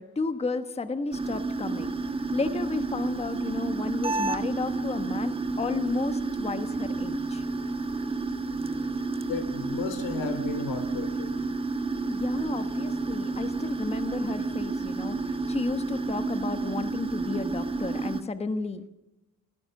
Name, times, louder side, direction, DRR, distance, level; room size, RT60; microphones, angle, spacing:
voice 1, 0.0-1.9 2.3-7.4 12.1-15.2 15.5-18.9, left 3 dB, 15° left, 9 dB, 1.2 m, -32 dB
sound 1, 1.1-18.2, right 3 dB, 15° right, 1.3 m, -30 dB
voice 2, 9.2-11.4, left 5 dB, 80° left, 12 dB, 3.3 m, -34 dB
26.0 x 18.0 x 6.6 m, 0.90 s
cardioid pair, 140°, 36 cm